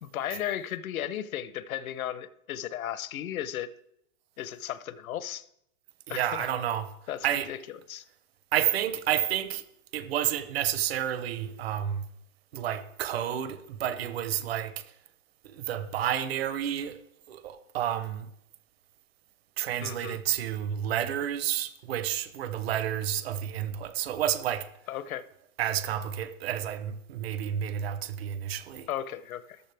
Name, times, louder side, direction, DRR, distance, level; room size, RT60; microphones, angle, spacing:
voice 1, 0.0-3.7 4.4-5.4 6.1-6.5 7.1-7.6 7.9-8.0 19.8-20.2 24.9-25.2 28.9-29.6, left 11 dB, 85° left, 0.9 m, -35 dB
voice 2, 6.1-6.9 7.2-7.5 8.5-9.6 9.9-12.0 12.5-14.8 15.4-17.0 17.3-18.3 19.6-24.7 25.6-28.9, right 10 dB, 45° right, 0.9 m, -30 dB
14.0 x 12.5 x 3.4 m
supercardioid pair, 175°, 41 cm